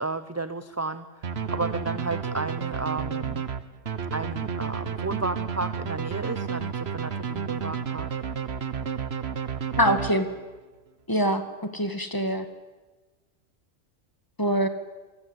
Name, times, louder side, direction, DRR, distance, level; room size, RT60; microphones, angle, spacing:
voice 1, 0.0-3.4 4.1-8.1, right 3 dB, 15° right, 12 dB, 0.6 m, -33 dB
sound 1, 1.2-10.5, right 7 dB, 55° right, 1.4 m, -31 dB
voice 2, 9.8-10.3 11.1-12.5 14.4-14.7, equal, 15° left, 9 dB, 2.0 m, -24 dB
28.0 x 20.5 x 8.1 m, 1.2 s
omnidirectional pair, 1.3 m